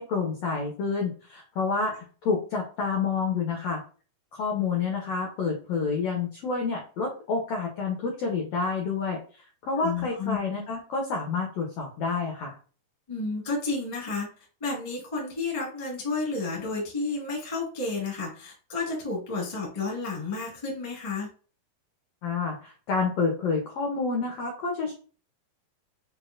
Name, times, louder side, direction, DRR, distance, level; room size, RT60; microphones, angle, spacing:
voice 1, 0.0-1.9 2.2-3.8 4.3-9.2 9.6-12.5 22.2-24.9, left 4 dB, 90° left, 1 dB, 1.4 m, -28 dB
voice 2, 9.7-10.4 13.1-14.3 14.6-21.3, left 3 dB, 40° left, -3 dB, 0.4 m, -31 dB
6.1 x 2.4 x 2.5 m, 0.39 s
omnidirectional pair, 4.0 m